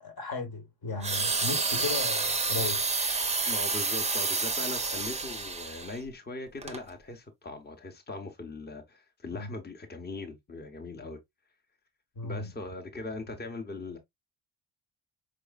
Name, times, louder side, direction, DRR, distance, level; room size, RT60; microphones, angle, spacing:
voice 1, 0.0-2.8 9.3-9.5 12.2-12.5, left 4 dB, 50° left, 1.2 m, -36 dB
sound 1, 1.0-6.0 6.6-6.8, right 3 dB, 15° right, 0.6 m, -29 dB
voice 2, 3.4-11.2 12.2-14.0, left 3 dB, 20° left, 0.9 m, -40 dB
4.9 x 3.0 x 2.2 m
cardioid pair, 70°, 48 cm